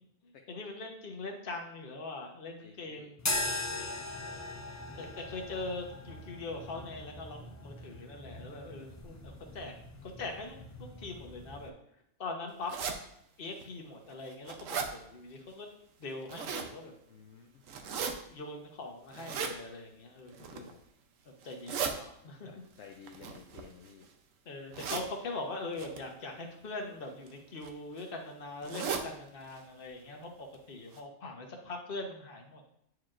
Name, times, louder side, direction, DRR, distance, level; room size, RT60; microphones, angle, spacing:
voice 1, 0.2-3.5 5.0-9.7 10.0-11.7 12.2-12.7 13.4-15.7 16.0-16.9 18.3-20.7 21.2-22.5 24.5-32.6, left 2 dB, 45° left, 3 dB, 1.1 m, -42 dB
voice 2, 2.6-3.1 3.7-4.0 4.7-5.1 8.7-8.9 17.1-17.6 20.5-20.8 22.5-24.1 30.0-30.1, left 6 dB, 65° left, 3 dB, 0.9 m, -54 dB
sound 1, 3.2-11.7, left 1 dB, 30° left, 0.3 m, -40 dB
sound 2, 12.7-13.0 13.6-13.7 14.1-14.9 16.0-16.7 17.7-18.1 19.1-19.5 20.3-20.7 21.4-21.9 23.0-24.0 24.7-25.1 25.8-26.0 27.0-27.3 27.6-27.7 28.0-28.1 28.6-29.1 29.5-29.6 29.9-30.0 30.5-30.6 30.9-31.0, right 6 dB, 80° right, 1.1 m, -36 dB
9.0 x 4.7 x 2.5 m, 0.78 s
omnidirectional pair, 1.4 m